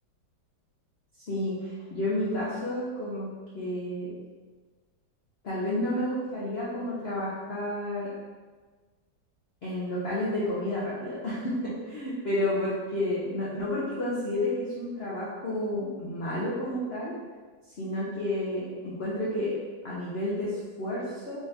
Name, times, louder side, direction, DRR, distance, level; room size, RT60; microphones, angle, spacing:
voice 1, 1.3-3.3 3.5-4.1 5.4-8.1 9.6-17.1 17.8-19.5 19.8-21.4, left 1 dB, 65° left, -8 dB, 0.6 m, -31 dB
3.6 x 3.5 x 2.7 m, 1.4 s
omnidirectional pair, 2.0 m